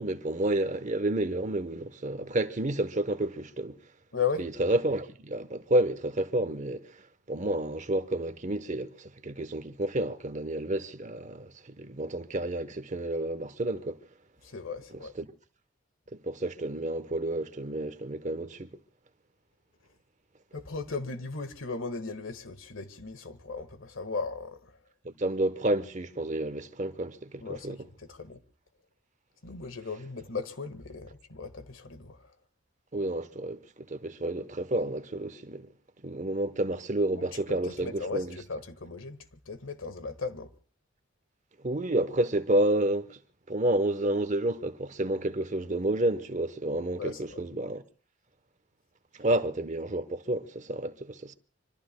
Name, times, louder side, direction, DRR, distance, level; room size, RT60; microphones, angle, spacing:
voice 1, 0.0-3.8 4.4-6.9 7.3-14.0 15.2-15.3 16.1-18.8 25.0-27.8 32.9-35.7 36.0-38.4 41.6-43.2 43.5-47.8 49.2-51.3, right 1 dB, 35° right, 0.9 m, -30 dB
voice 2, 4.1-4.5 14.4-15.2 20.5-24.8 27.4-28.4 29.4-32.3 37.3-40.5 47.0-47.4, left 4 dB, 85° left, 1.6 m, -37 dB
26.0 x 24.5 x 2.2 m
head